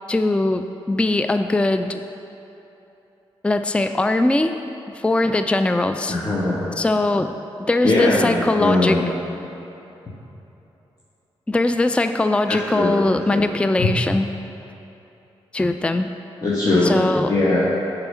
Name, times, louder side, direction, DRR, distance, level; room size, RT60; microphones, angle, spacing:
voice 1, 0.1-2.0 3.4-4.6 4.9-6.2 6.8-9.0 11.5-14.3 15.5-16.1 16.8-17.3, left 2 dB, 10° left, 8 dB, 0.4 m, -21 dB
voice 2, 6.0-6.6 7.8-9.1 12.5-12.9 13.3-13.4 13.8-13.9 16.4-17.0 17.3-17.6, left 2 dB, 35° left, -8 dB, 1.5 m, -20 dB
6.8 x 5.0 x 5.5 m, 3.0 s
supercardioid pair, 40°, 11 cm